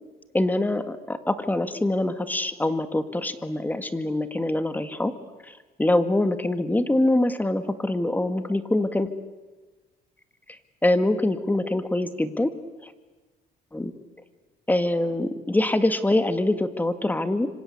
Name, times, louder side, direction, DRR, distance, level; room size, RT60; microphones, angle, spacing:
voice 1, 0.3-5.1 5.5-5.6 5.8-9.1 10.8-12.5 12.8-12.9 13.7-13.9 14.7-17.5, left 1 dB, 10° left, 9 dB, 1.9 m, -24 dB
26.5 x 25.5 x 8.3 m, 1.2 s
cardioid pair, 110°, 17 cm